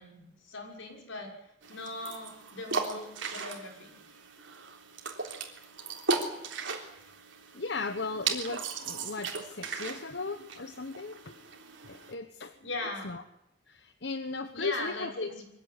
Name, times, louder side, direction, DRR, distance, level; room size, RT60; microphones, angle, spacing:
voice 1, 0.0-1.3 1.7-4.0 12.6-13.1 14.5-15.4, left 2 dB, 85° left, 1 dB, 6.2 m, -39 dB
sound 1, 1.6-12.1, right 4 dB, 75° right, 3.6 m, -37 dB
voice 2, 7.5-11.3 11.8-12.5 13.0-13.2 13.7-15.3, left 3 dB, 60° left, 9 dB, 1.2 m, -37 dB
23.5 x 16.0 x 9.9 m, 0.83 s
head